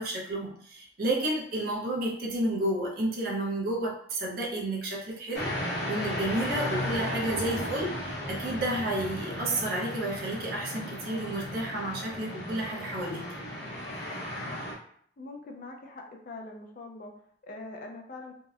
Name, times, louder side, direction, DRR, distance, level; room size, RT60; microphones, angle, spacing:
voice 1, 0.0-13.2, right 1 dB, 55° right, -3 dB, 0.6 m, -31 dB
sound 1, 5.3-14.7, left 1 dB, 65° left, 0.8 m, -35 dB
voice 2, 15.2-17.1 17.4-18.3, left 2 dB, 50° left, 3 dB, 0.4 m, -43 dB
2.7 x 2.0 x 2.4 m, 0.63 s
head